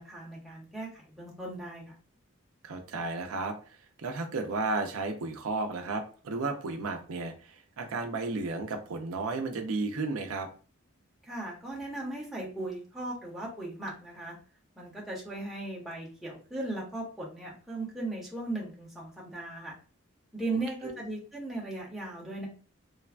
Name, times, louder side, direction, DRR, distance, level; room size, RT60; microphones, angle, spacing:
voice 1, 0.0-1.9 11.2-14.4 14.8-19.8 20.3-22.5, right 2 dB, ahead, -5 dB, 0.8 m, -37 dB
voice 2, 2.6-3.6 4.0-10.5 20.8-21.0, right 3 dB, 90° right, 4 dB, 0.5 m, -33 dB
3.2 x 2.2 x 2.4 m, 0.38 s
head